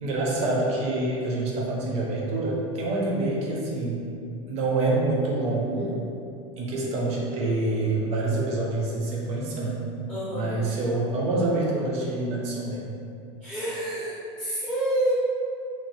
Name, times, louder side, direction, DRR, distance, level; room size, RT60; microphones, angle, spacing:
voice 1, 0.0-4.1 4.5-6.0 6.6-9.8 10.3-12.9, right 2 dB, 40° right, -3 dB, 0.6 m, -26 dB
voice 2, 10.1-10.5 13.4-15.1, right 1 dB, 10° left, -11 dB, 0.5 m, -28 dB
2.9 x 2.0 x 3.1 m, 2.5 s
supercardioid pair, 140°, 17 cm